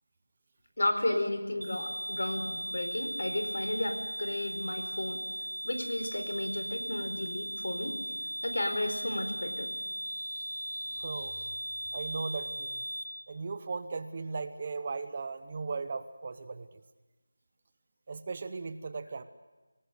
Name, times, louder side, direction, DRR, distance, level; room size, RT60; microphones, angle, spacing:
voice 1, 0.8-5.3 5.6-8.0 8.4-9.7 10.0-11.5, left 1 dB, 55° left, 7 dB, 4.2 m, -34 dB
sound 1, 1.6-13.0, equal, 85° right, 3.9 m, -37 dB
voice 2, 11.0-11.3 11.9-12.8 13.3-16.8 18.1-19.2, right 4 dB, 25° right, 11 dB, 0.8 m, -37 dB
28.0 x 19.0 x 6.6 m, 1.2 s
figure-of-eight pair, 180°, 0 cm